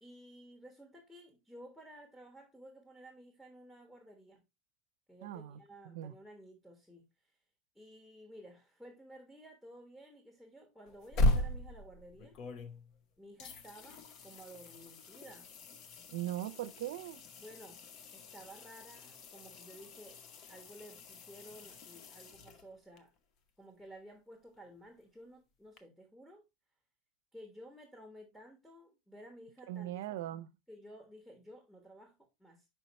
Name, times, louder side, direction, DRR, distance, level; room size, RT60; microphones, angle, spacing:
voice 1, 0.0-4.4 5.1-7.4 7.7-12.4 13.2-15.5 17.4-17.8 18.1-23.1 23.6-26.4 27.3-30.0 30.7-32.7, equal, 5° left, 1.3 m, -54 dB
voice 2, 5.2-5.6 5.8-6.1 16.1-17.2 29.7-30.5, right 13 dB, 80° right, 0.6 m, -39 dB
sound 1, 10.9-13.0 13.4-23.0 25.8-25.9, left 1 dB, 45° left, 0.9 m, -38 dB
5.8 x 4.5 x 4.1 m
supercardioid pair, 135°, 0 cm